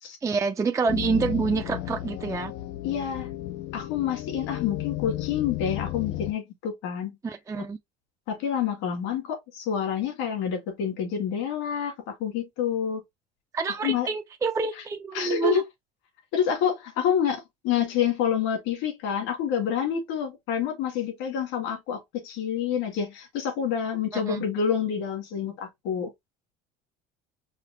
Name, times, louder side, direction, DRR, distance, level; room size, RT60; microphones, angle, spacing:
voice 1, 0.2-2.5 7.2-7.8 13.5-15.6 24.1-24.4, right 4 dB, 15° right, 0.4 m, -27 dB
sound 1, 0.9-6.3, left 14 dB, 65° left, 0.6 m, -33 dB
voice 2, 2.8-3.3 3.7-7.1 7.5-7.6 8.3-13.0 13.8-14.1 14.8-14.9 15.1-15.6 16.3-26.1, left 8 dB, 80° left, 2.4 m, -28 dB
5.0 x 2.1 x 4.3 m
cardioid pair, 125°, 19 cm